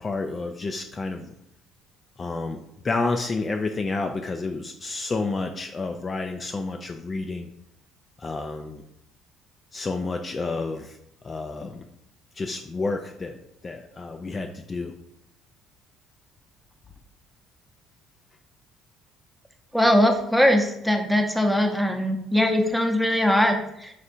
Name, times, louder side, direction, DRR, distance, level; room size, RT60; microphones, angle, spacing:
voice 1, 0.0-1.3 2.2-2.6 2.8-7.5 8.2-8.8 9.7-10.9 11.2-11.8 12.4-13.4 13.6-14.9, left 3 dB, 35° left, 4 dB, 0.3 m, -30 dB
voice 2, 19.7-23.9, equal, ahead, 3 dB, 0.7 m, -21 dB
3.4 x 2.5 x 4.3 m, 0.79 s
hypercardioid pair, 60°, 0 cm